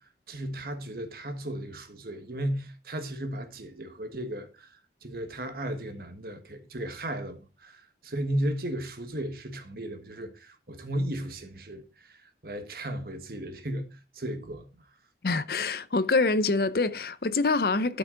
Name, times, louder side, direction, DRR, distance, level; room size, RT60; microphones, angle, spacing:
voice 1, 0.3-4.7 5.0-13.9 14.1-14.6, right 1 dB, 55° right, 1.5 m, -35 dB
voice 2, 15.2-18.0, left 3 dB, 55° left, 0.7 m, -25 dB
12.5 x 5.9 x 3.9 m
head